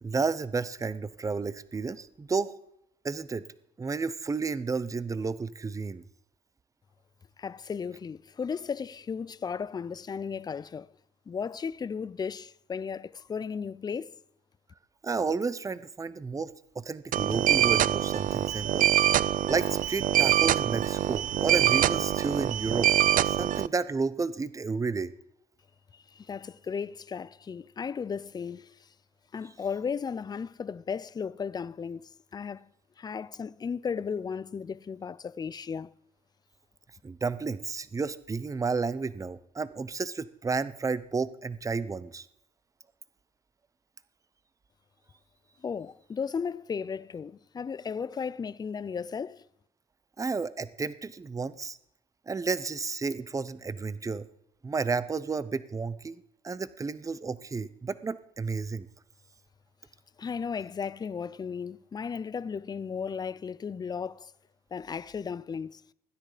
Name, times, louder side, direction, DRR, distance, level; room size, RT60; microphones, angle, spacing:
voice 1, 0.0-2.6 3.0-3.5 3.8-6.0 15.0-18.9 19.5-22.9 23.3-25.1 37.0-42.3 50.2-51.8 52.3-54.2 54.6-58.9, right 4 dB, 20° right, 0.8 m, -32 dB
voice 2, 7.4-10.9 11.3-14.2 25.9-28.9 29.3-32.7 33.0-35.9 45.6-49.4 60.2-64.3 64.7-65.8, left 6 dB, 25° left, 0.5 m, -35 dB
sound 1, 17.1-23.7, right 11 dB, 50° right, 0.5 m, -24 dB
17.0 x 10.0 x 5.0 m
cardioid pair, 110°, 17 cm